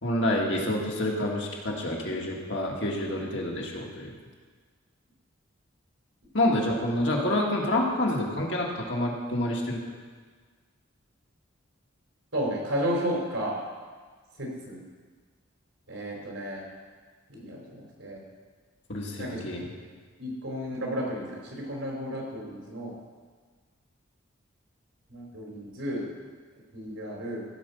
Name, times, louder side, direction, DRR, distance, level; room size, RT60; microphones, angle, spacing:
voice 1, 0.0-4.2 6.3-9.8 18.9-19.7, left 1 dB, 60° left, -2 dB, 1.9 m, -28 dB
voice 2, 12.3-13.5 14.4-14.8 15.9-16.6 17.3-18.2 19.2-19.4 20.2-23.0 25.1-26.1 26.7-27.5, equal, 75° right, -2 dB, 3.6 m, -32 dB
15.5 x 5.2 x 6.9 m, 1.5 s
head